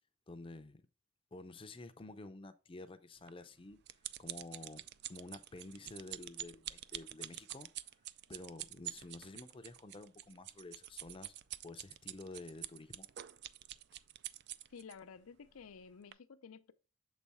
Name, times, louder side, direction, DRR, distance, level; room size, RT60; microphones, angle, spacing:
voice 1, 0.3-0.8 1.3-3.8 4.2-7.7 8.3-11.3 11.6-13.1, left 2 dB, 25° left, 0.6 m, -50 dB
sound 1, 3.3-14.9 15.6-15.8 16.1-16.2, right 13 dB, 50° right, 0.3 m, -46 dB
voice 2, 14.7-16.7, left 6 dB, 75° left, 0.5 m, -53 dB
7.0 x 4.2 x 3.4 m
head